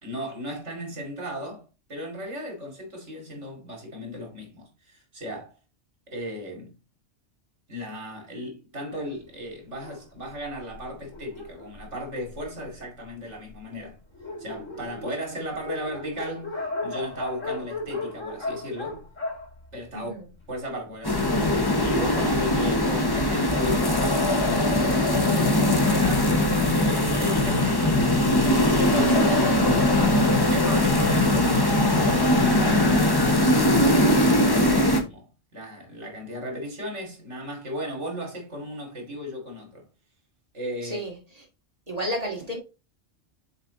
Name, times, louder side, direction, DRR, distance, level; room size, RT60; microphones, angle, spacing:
voice 1, 0.0-5.5 6.1-6.7 7.7-14.0 14.4-19.0 19.7-20.1 20.5-21.4 21.8-24.2 24.5-26.3 26.7-28.0 28.5-29.3 30.5-39.9 40.5-41.0, equal, 70° right, 2.9 m, -35 dB
Dog, 9.8-12.7 13.4-13.5 13.8-13.9 14.1-20.5, left 2 dB, 85° left, 2.8 m, -36 dB
voice 2, 19.9-20.3 29.1-29.8 40.8-41.4 41.9-42.6, right 1 dB, 30° right, 2.4 m, -32 dB
sound 1, 21.0-35.0, left 1 dB, 20° left, 0.9 m, -21 dB
7.0 x 4.1 x 3.8 m
omnidirectional pair, 1.3 m